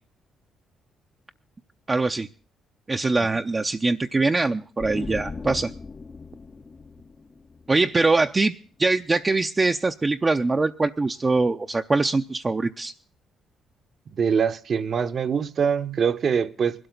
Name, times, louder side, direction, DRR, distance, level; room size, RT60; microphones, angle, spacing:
voice 1, 1.9-2.3 2.9-5.7 7.7-8.5 8.8-12.9, right 3 dB, 25° right, 0.6 m, -23 dB
sound 1, 4.8-8.4, left 4 dB, 30° left, 0.7 m, -38 dB
voice 2, 14.2-16.9, right 6 dB, 50° right, 1.0 m, -24 dB
21.0 x 12.5 x 3.9 m
cardioid pair, 90°, 0 cm